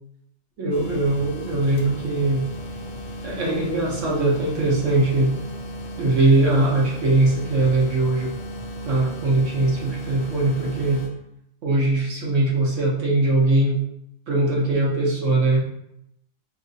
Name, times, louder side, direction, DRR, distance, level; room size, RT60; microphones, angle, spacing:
voice 1, 0.6-2.4 3.2-5.3 6.0-8.3 8.8-11.0 11.6-13.8 14.3-15.6, right 2 dB, 55° right, -3 dB, 1.0 m, -21 dB
sound 1, 0.7-11.1, equal, 80° left, 0.6 m, -35 dB
3.1 x 2.8 x 2.6 m, 0.78 s
omnidirectional pair, 1.7 m